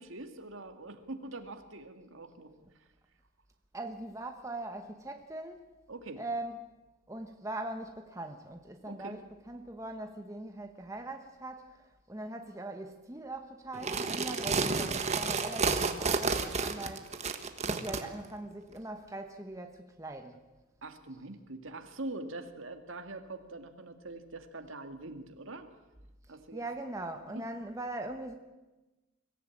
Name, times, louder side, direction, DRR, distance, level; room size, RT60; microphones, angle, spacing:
voice 1, 0.0-2.5 5.9-6.2 8.9-9.2 17.7-18.0 20.8-25.7 26.3-26.6 27.3-27.4, right 2 dB, 70° right, 6 dB, 2.0 m, -43 dB
voice 2, 3.7-5.6 6.2-6.7 7.1-9.2 9.5-17.1 17.6-20.4 26.5-28.4, right 2 dB, 15° right, 5 dB, 1.0 m, -41 dB
sound 1, 13.7-18.0, right 4 dB, 30° right, 1.3 m, -31 dB
23.5 x 15.0 x 8.6 m, 1.1 s
head